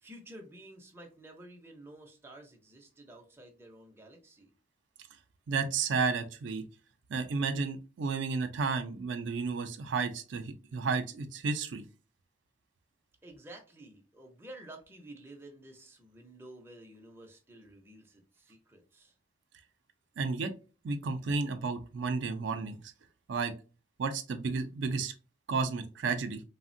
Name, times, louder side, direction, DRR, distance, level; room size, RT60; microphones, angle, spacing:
voice 1, 0.0-4.5 13.2-19.1, right 1 dB, 10° right, 1 dB, 0.5 m, -51 dB
voice 2, 5.5-6.6 7.1-11.8 20.2-20.5 20.8-22.8 23.3-23.5 24.0-25.1 25.5-26.4, right 4 dB, 75° right, 7 dB, 0.4 m, -32 dB
3.4 x 2.1 x 2.5 m, 0.33 s
head